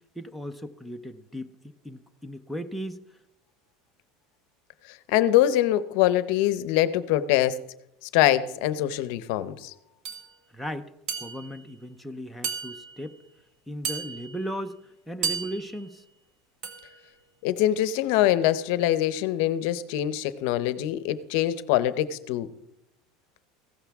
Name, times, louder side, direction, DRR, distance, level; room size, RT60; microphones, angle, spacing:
voice 1, 0.2-3.0 10.5-10.9 11.2-13.2 13.7-14.8 15.1-16.0, equal, ahead, 4 dB, 0.6 m, -36 dB
voice 2, 5.1-7.6 8.1-9.7 17.4-22.5, left 13 dB, 60° left, 15 dB, 0.7 m, -24 dB
sound 1, 10.0-10.3 11.1-11.6 12.4-13.1 13.8-14.5 15.2-15.9 16.6-17.0, right 6 dB, 45° right, 1.7 m, -34 dB
15.5 x 13.0 x 3.5 m, 0.84 s
cardioid pair, 160°, 0 cm